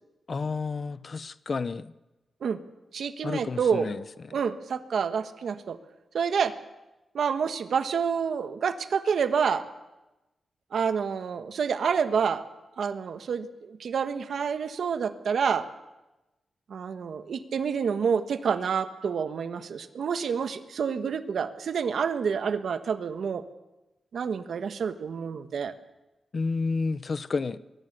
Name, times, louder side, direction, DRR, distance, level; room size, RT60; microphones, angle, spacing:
voice 1, 0.3-1.9 3.2-4.3 26.3-27.6, left 4 dB, 35° left, 16 dB, 0.7 m, -31 dB
voice 2, 2.9-3.9 4.3-5.8 6.1-6.6 7.1-9.6 10.7-12.4 12.8-15.7 16.7-23.4 24.1-25.7, right 6 dB, 70° right, 10 dB, 1.2 m, -28 dB
23.0 x 22.0 x 6.7 m, 1.0 s
wide cardioid pair, 175°, 0 cm